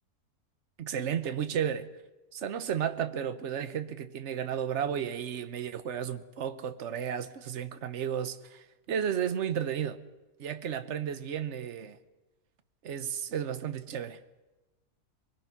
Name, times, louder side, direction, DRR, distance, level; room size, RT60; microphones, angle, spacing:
voice 1, 0.8-1.9 2.3-10.0 10.4-12.0 12.8-14.2, right 8 dB, 50° right, 1.2 m, -33 dB
24.5 x 21.0 x 6.0 m
omnidirectional pair, 1.7 m